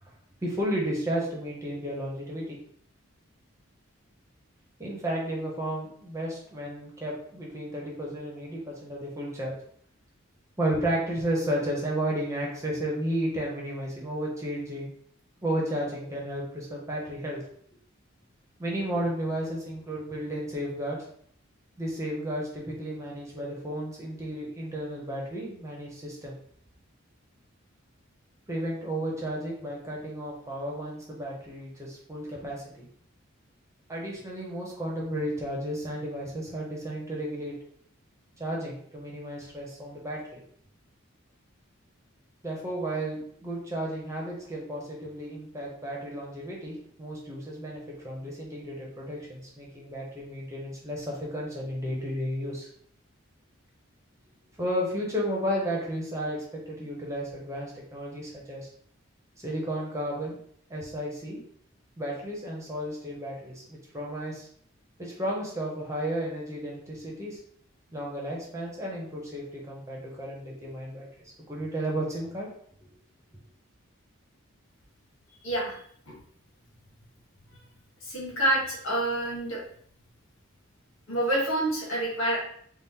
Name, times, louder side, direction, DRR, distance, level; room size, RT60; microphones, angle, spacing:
voice 1, 0.4-2.6 4.8-9.5 10.6-14.9 15.4-17.4 18.6-21.0 21.8-26.4 28.5-32.9 33.9-37.6 38.4-40.4 42.4-52.7 54.6-58.7 59.4-60.4 60.7-61.4 62.0-64.5 65.0-67.4 67.9-72.5, right 1 dB, 15° right, -3 dB, 0.7 m, -33 dB
voice 2, 78.0-79.6 81.1-82.4, right 1 dB, 75° left, -3 dB, 1.4 m, -27 dB
4.2 x 2.0 x 3.6 m, 0.62 s
head